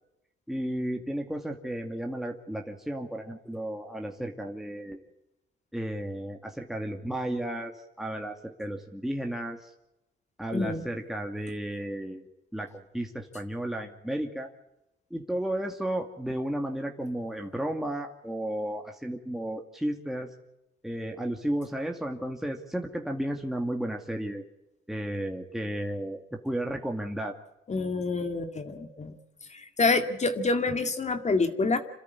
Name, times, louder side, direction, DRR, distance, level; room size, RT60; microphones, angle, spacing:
voice 1, 0.5-5.0 5.7-9.7 10.4-12.2 12.5-12.7 12.9-14.5 15.1-20.3 20.8-24.4 24.9-27.4, right 1 dB, ahead, 2 dB, 2.3 m, -33 dB
voice 2, 10.5-10.8 27.7-29.1 29.5-31.8, left 3 dB, 35° left, 6 dB, 2.2 m, -27 dB
27.5 x 13.5 x 9.6 m, 0.89 s
cardioid pair, 90°, 20 cm